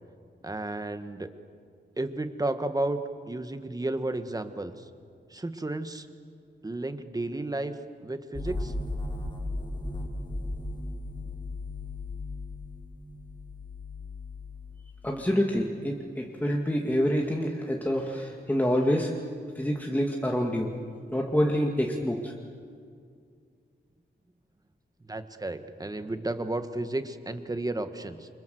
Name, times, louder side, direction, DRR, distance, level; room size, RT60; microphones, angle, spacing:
voice 1, 0.4-1.3 2.0-3.0 3.3-4.9 5.3-6.1 6.6-7.7 8.0-8.7 25.0-28.3, right 2 dB, 20° right, 9 dB, 1.7 m, -32 dB
sound 1, 8.3-15.1, left 2 dB, 25° left, 4.6 m, -36 dB
voice 2, 15.0-19.1 19.6-20.7 21.1-22.3, equal, 10° left, 0 dB, 2.2 m, -27 dB
29.0 x 25.5 x 7.9 m, 2.2 s
wide cardioid pair, 115°, 19 cm